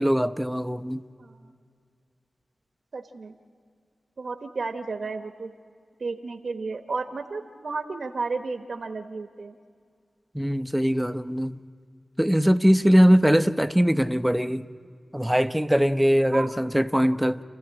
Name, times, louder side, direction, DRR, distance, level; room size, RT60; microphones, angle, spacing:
voice 1, 0.0-1.0 10.3-11.6 12.2-14.7 15.1-17.4, equal, 5° right, 11 dB, 0.8 m, -21 dB
voice 2, 1.2-1.5 2.9-3.3 4.2-5.5 6.0-9.6 16.3-16.5, right 4 dB, 65° right, 7 dB, 1.0 m, -33 dB
28.5 x 14.0 x 8.7 m, 2.2 s
cardioid pair, 45°, 0 cm